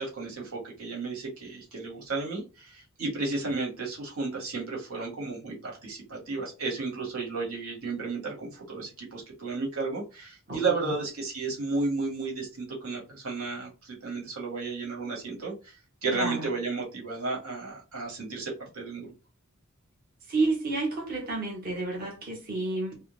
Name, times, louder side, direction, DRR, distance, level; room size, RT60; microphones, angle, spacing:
voice 1, 0.0-19.1, right 3 dB, 85° right, -2 dB, 1.5 m, -33 dB
voice 2, 10.5-10.9 16.1-16.5 20.3-22.9, right 3 dB, 45° right, -1 dB, 0.9 m, -30 dB
3.8 x 2.1 x 3.7 m, 0.31 s
head